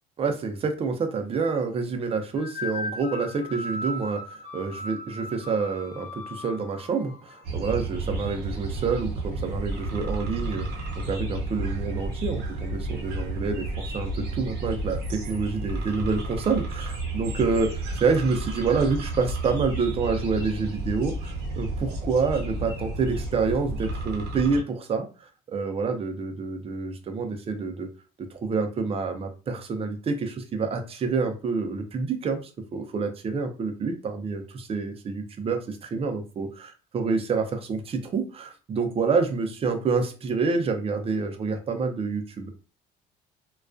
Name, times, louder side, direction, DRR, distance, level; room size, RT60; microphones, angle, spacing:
voice 1, 0.2-10.7 11.0-25.1 25.5-27.9 28.3-42.5, right 4 dB, 35° right, 6 dB, 0.5 m, -28 dB
sound 1, 2.4-7.4, left 1 dB, 75° left, 0.6 m, -37 dB
sound 2, 7.4-24.6, right 2 dB, 70° right, 0.7 m, -32 dB
2.3 x 2.2 x 2.4 m, 0.34 s
cardioid pair, 110°, 17 cm